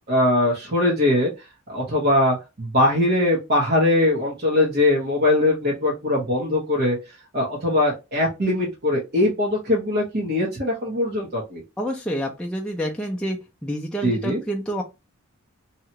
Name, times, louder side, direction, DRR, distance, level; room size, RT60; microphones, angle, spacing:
voice 1, 0.1-1.3 1.7-7.0 7.3-11.6 14.0-14.4, left 1 dB, 45° right, -2 dB, 0.9 m, -21 dB
voice 2, 11.8-13.4 13.6-14.8, equal, 5° left, -2 dB, 0.4 m, -28 dB
2.8 x 2.3 x 2.8 m, 0.25 s
head